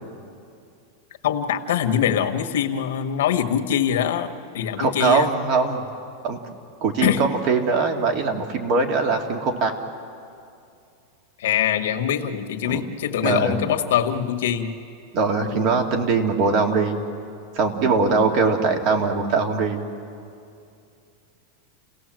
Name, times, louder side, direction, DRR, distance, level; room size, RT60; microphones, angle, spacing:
voice 1, 1.2-5.3 7.0-7.2 11.4-14.7, left 9 dB, 80° left, 6 dB, 1.6 m, -23 dB
voice 2, 4.8-5.8 6.2-6.4 6.8-9.7 12.7-12.8 13.2-13.6 15.1-17.0 17.6-19.8, right 4 dB, 45° right, 4 dB, 2.4 m, -21 dB
29.5 x 17.5 x 7.7 m, 2.5 s
supercardioid pair, 155°, 0 cm